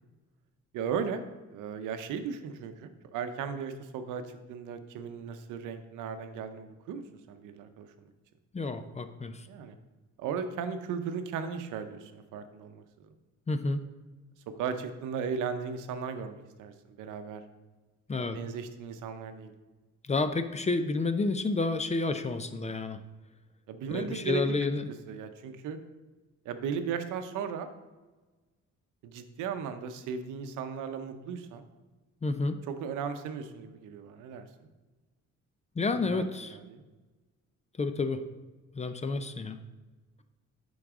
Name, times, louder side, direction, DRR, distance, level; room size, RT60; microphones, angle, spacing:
voice 1, 0.7-1.2 1.5-8.1 9.5-9.8 10.2-13.1 14.6-17.4 18.2-19.5 23.7-24.6 25.1-25.8 26.4-27.7 29.0-31.6 32.7-34.5 35.9-36.8, right 6 dB, 90° right, 9 dB, 0.7 m, -36 dB
voice 2, 8.5-9.5 13.5-13.8 18.1-18.4 20.1-23.0 23.9-24.9 32.2-32.6 35.8-36.6 37.8-38.2 38.7-39.6, left 3 dB, 20° left, 9 dB, 0.5 m, -30 dB
9.8 x 4.0 x 3.6 m, 1.2 s
cardioid pair, 90°, 30 cm